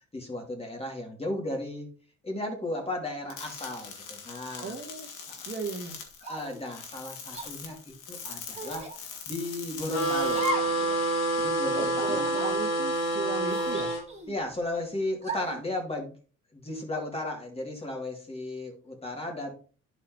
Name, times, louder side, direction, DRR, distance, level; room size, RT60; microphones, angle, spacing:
voice 1, 0.1-1.9 2.2-4.7 6.2-8.9 9.3-11.0 11.4-12.2 14.3-16.2 16.5-19.5, left 1 dB, 20° left, 1 dB, 2.9 m, -35 dB
sound 1, 3.3-10.5, left 6 dB, 85° left, 2.0 m, -42 dB
voice 2, 4.6-5.1 5.5-6.0 11.7-13.9, right 5 dB, 40° right, 3 dB, 1.5 m, -36 dB
sound 2, 6.2-6.6 7.3-7.5 8.5-9.0 10.3-10.8 11.2-11.3 12.1-12.6 13.5-14.4 15.2-15.6, right 1 dB, 20° right, 2.7 m, -36 dB
sound 3, 9.9-14.0, right 1 dB, 60° left, 1.9 m, -27 dB
11.0 x 4.9 x 3.1 m, 0.36 s
cardioid pair, 90°, 30 cm